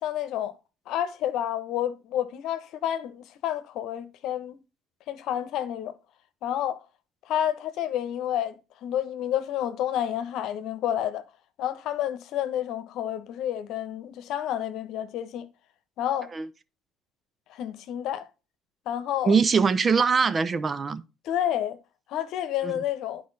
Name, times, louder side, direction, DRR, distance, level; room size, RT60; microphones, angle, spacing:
voice 1, 0.0-0.5 0.9-4.6 5.1-5.9 6.4-6.8 7.3-8.6 8.8-11.2 11.6-15.5 16.0-16.3 17.5-18.3 18.9-19.3 21.2-21.8 22.1-23.2, left 11 dB, 65° left, 1.0 m, -29 dB
voice 2, 19.2-21.0 22.6-22.7, right 5 dB, 35° right, 0.8 m, -22 dB
9.6 x 4.9 x 4.0 m
hypercardioid pair, 70°, 0 cm